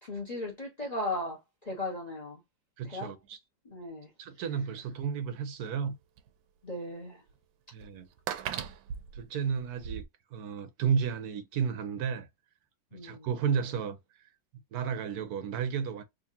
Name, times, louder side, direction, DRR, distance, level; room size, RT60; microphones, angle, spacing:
voice 1, 0.0-2.4 2.8-3.1 3.6-4.1 6.6-7.2 12.9-13.3, left 1 dB, 25° left, 1.0 m, -37 dB
voice 2, 2.8-3.4 4.2-6.0 7.7-8.1 9.1-10.0 10.3-12.3 12.9-14.0 14.7-16.0, right 7 dB, 65° right, 1.0 m, -32 dB
sound 1, 4.9-5.0 5.8-5.9 6.2-6.3 7.3-7.4 7.8-10.0, right 9 dB, 90° right, 1.4 m, -38 dB
3.8 x 2.8 x 2.7 m
omnidirectional pair, 2.0 m